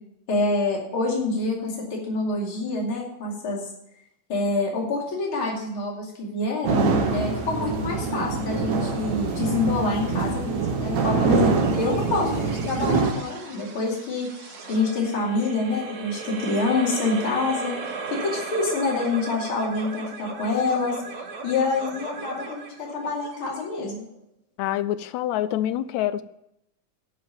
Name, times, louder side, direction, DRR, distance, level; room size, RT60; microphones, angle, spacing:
voice 1, 0.3-3.7 4.3-6.8 7.1-17.8 18.1-21.0 21.4-24.1, left 3 dB, 45° left, -3 dB, 3.3 m, -26 dB
sound 1, 6.6-13.1, right 4 dB, 70° right, 2.6 m, -24 dB
sound 2, 11.6-24.2, right 4 dB, 85° right, 0.8 m, -37 dB
voice 2, 24.6-26.2, left 12 dB, 80° left, 14 dB, 1.8 m, -26 dB
12.0 x 5.2 x 8.5 m, 0.79 s
omnidirectional pair, 3.5 m